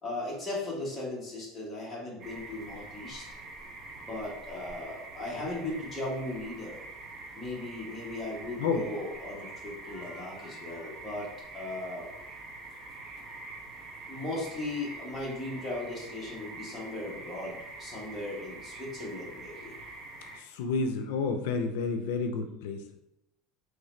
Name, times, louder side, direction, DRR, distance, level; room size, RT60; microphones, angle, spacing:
voice 1, 0.0-3.2 4.0-6.9 7.3-11.3 11.5-12.1 14.1-19.7, left 2 dB, 10° left, -5 dB, 1.1 m, -37 dB
sound 1, 2.2-20.4, right 3 dB, 35° right, 0.7 m, -45 dB
voice 2, 9.9-10.8 20.4-23.0, left 4 dB, 80° left, 6 dB, 0.4 m, -31 dB
3.7 x 3.1 x 3.1 m, 0.82 s
cardioid pair, 165°, 0 cm